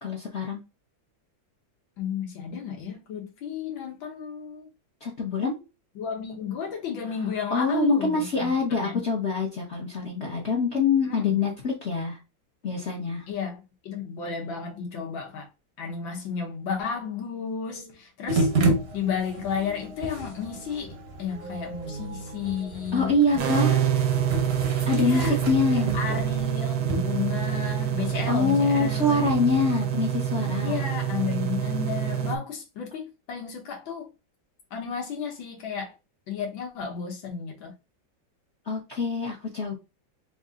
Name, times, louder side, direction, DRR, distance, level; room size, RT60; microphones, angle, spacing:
voice 1, 0.0-0.6 5.0-5.6 7.5-12.2 12.6-13.2 22.9-23.8 24.9-25.9 28.3-30.9 38.7-39.8, left 3 dB, 45° left, 0.9 m, -25 dB
voice 2, 2.0-4.7 6.0-9.0 11.0-11.4 13.3-15.5 15.8-18.5 18.9-23.8 24.9-25.4 25.7-29.2 30.6-34.1 34.7-35.9 36.3-37.7, left 7 dB, 80° left, 1.9 m, -33 dB
sound 1, 18.3-29.6, right 2 dB, 45° right, 0.8 m, -32 dB
sound 2, 23.4-32.4, right 9 dB, 65° right, 1.1 m, -26 dB
4.0 x 2.8 x 3.6 m
omnidirectional pair, 2.1 m